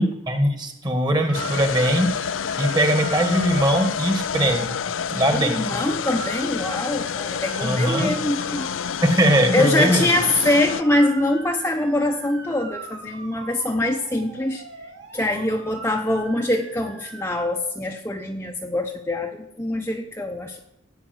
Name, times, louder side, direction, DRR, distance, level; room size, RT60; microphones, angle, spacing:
voice 1, 0.0-2.1 2.6-4.7 5.1-5.8 7.6-8.1 9.0-10.1, right 1 dB, 20° right, 6 dB, 1.7 m, -21 dB
sound 1, 1.3-10.8, left 7 dB, 70° left, 0.5 m, -28 dB
Motor vehicle (road) / Siren, 1.3-17.5, right 4 dB, 60° right, 2.7 m, -40 dB
voice 2, 5.3-8.7 9.5-14.6 15.1-20.6, left 1 dB, 10° left, 2 dB, 0.9 m, -24 dB
14.5 x 8.7 x 8.0 m, 0.84 s
head